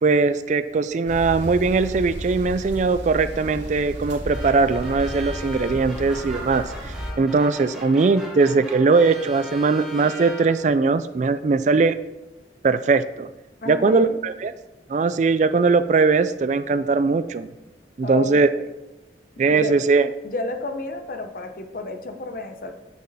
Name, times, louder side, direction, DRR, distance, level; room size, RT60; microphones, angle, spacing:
voice 1, 0.0-11.9 12.6-13.3 13.7-14.5 14.9-17.5 18.0-18.5 19.4-20.1, right 4 dB, 40° right, 12 dB, 0.3 m, -20 dB
sound 1, 1.1-7.1, equal, 85° right, 2.3 m, -33 dB
sound 2, 4.3-10.8, left 1 dB, 5° right, 1.7 m, -39 dB
voice 2, 13.6-14.2 18.0-18.7 19.5-19.8 20.2-22.7, left 2 dB, 50° left, 6 dB, 0.8 m, -32 dB
8.3 x 6.3 x 4.1 m, 0.99 s
head